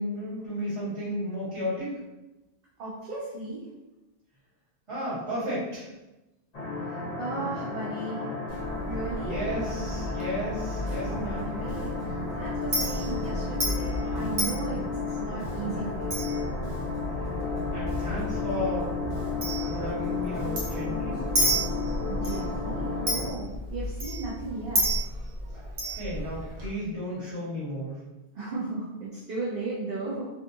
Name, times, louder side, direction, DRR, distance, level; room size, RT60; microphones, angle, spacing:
voice 1, 0.0-1.9 4.9-5.9 9.2-11.6 17.7-18.9 19.6-21.2 25.9-28.0, equal, 30° right, -9 dB, 1.3 m, -33 dB
voice 2, 2.8-3.7 6.9-8.2 8.9-9.4 11.1-11.3 11.6-16.2 22.1-24.9 28.3-30.3, right 3 dB, 60° right, -7 dB, 0.8 m, -36 dB
sound 1, 6.5-23.3, left 3 dB, 45° left, 0.7 m, -33 dB
Chink clink, 8.5-26.7, equal, 80° right, 1.2 m, -33 dB
Bass guitar, 11.1-11.4 11.7-16.4 16.6-20.9, equal, 5° left, 0.7 m, -44 dB
2.5 x 2.4 x 2.6 m, 1.0 s
omnidirectional pair, 1.1 m